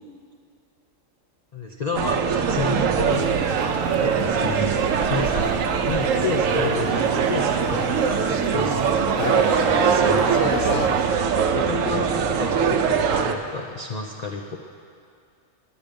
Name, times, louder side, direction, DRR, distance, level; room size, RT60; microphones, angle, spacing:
voice 1, 1.5-3.3 4.0-11.0 11.5-14.6, left 4 dB, 50° left, 1 dB, 0.5 m, -31 dB
sound 1, 2.0-13.3, right 6 dB, 80° right, 1.0 m, -22 dB
sound 2, 3.1-11.1, left 7 dB, 85° left, 1.0 m, -36 dB
10.0 x 8.9 x 5.2 m, 2.3 s
omnidirectional pair, 1.3 m